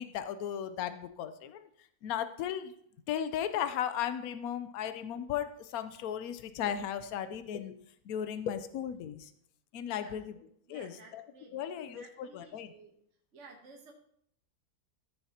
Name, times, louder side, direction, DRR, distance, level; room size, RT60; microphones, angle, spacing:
voice 1, 0.0-1.7 2.0-2.7 3.1-7.8 8.1-9.3 9.7-10.3 10.7-10.9 11.5-12.7, left 9 dB, 75° left, 11 dB, 1.1 m, -36 dB
voice 2, 9.9-10.4 10.7-12.9 13.3-13.9, right 3 dB, 55° right, 1 dB, 1.4 m, -55 dB
14.0 x 6.6 x 2.8 m, 0.69 s
omnidirectional pair, 1.6 m